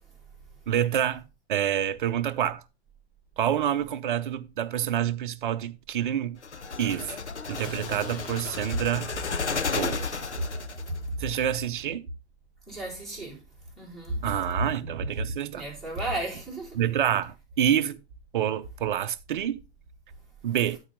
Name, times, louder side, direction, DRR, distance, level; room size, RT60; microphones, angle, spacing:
voice 1, 0.7-1.2 1.5-2.6 3.4-6.4 6.8-7.2 7.5-9.1 9.7-10.0 11.2-12.1 14.2-15.6 16.7-18.0 18.3-19.6 20.4-20.8, right 10 dB, 50° right, 0.8 m, -27 dB
sound 1, 6.4-11.0, left 4 dB, 85° left, 1.0 m, -33 dB
sound 2, 7.6-9.5, left 8 dB, 25° left, 0.8 m, -44 dB
voice 2, 12.7-13.4 13.8-14.3 15.5-16.8, right 1 dB, ahead, 4.4 m, -34 dB
12.5 x 4.9 x 3.8 m
figure-of-eight pair, 120°, 34 cm